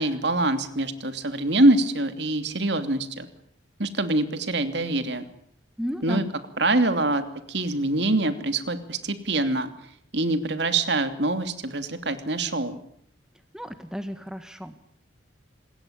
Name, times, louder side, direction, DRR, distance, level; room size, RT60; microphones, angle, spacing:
voice 1, 0.0-3.3 3.8-5.3 6.0-6.2 6.6-9.7 10.1-12.8, right 2 dB, 60° right, 9 dB, 2.9 m, -24 dB
voice 2, 5.8-6.3 13.5-14.8, equal, 5° right, 9 dB, 1.5 m, -33 dB
27.0 x 21.0 x 8.8 m, 0.67 s
head